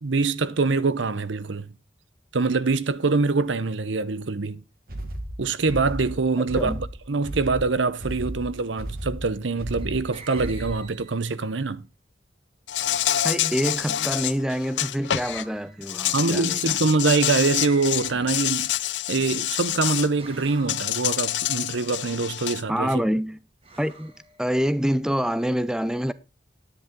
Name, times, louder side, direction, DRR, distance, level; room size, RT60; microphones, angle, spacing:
voice 1, 0.0-1.7 2.3-4.6 5.4-11.9 16.1-18.8 19.1-22.9, right 3 dB, 90° right, 0.8 m, -24 dB
sound 1, 4.9-11.0, right 1 dB, 50° right, 1.9 m, -34 dB
sound 2, 9.6-11.5 12.7-13.2 15.2-15.9 17.5-19.0 20.2-21.2 23.6-24.8, right 2 dB, 30° right, 2.0 m, -47 dB
Insect, 12.7-15.4 15.8-20.1 20.7-22.6, left 13 dB, 75° left, 0.5 m, -27 dB
voice 2, 13.2-16.8 22.7-23.4 23.8-24.1 24.4-26.1, equal, 5° right, 0.4 m, -26 dB
10.5 x 10.0 x 3.7 m
head